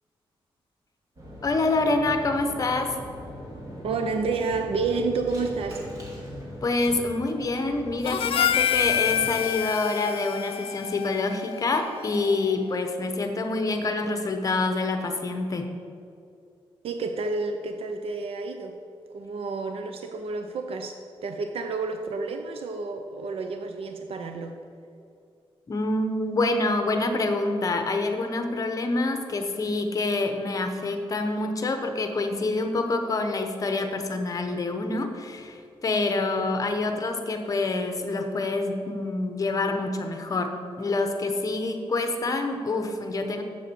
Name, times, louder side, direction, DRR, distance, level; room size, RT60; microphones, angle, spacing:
sound 1, 1.2-9.3, equal, 35° right, 2.5 m, -40 dB
voice 1, 1.4-3.0 6.6-15.7 25.7-40.5 40.8-43.4, left 3 dB, 35° left, 6 dB, 0.9 m, -26 dB
voice 2, 3.8-5.8 6.1-6.2 16.8-18.8 19.1-24.6, right 4 dB, 80° right, 6 dB, 0.6 m, -30 dB
Harmonica, 8.1-12.5, left 10 dB, 75° left, 0.4 m, -28 dB
7.7 x 7.5 x 6.8 m, 2.5 s
wide cardioid pair, 140°, 10 cm